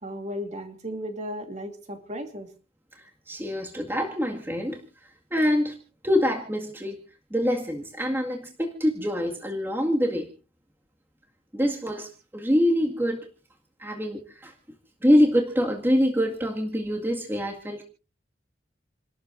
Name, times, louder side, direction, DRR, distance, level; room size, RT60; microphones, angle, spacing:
voice 1, 0.0-2.5, equal, 40° right, 5 dB, 2.5 m, -35 dB
voice 2, 3.3-4.8 5.3-5.8 6.0-7.0 7.3-10.3 11.5-13.3 13.8-14.5 15.0-17.8, equal, 10° right, 1 dB, 1.9 m, -25 dB
29.5 x 13.0 x 2.6 m, 0.35 s
head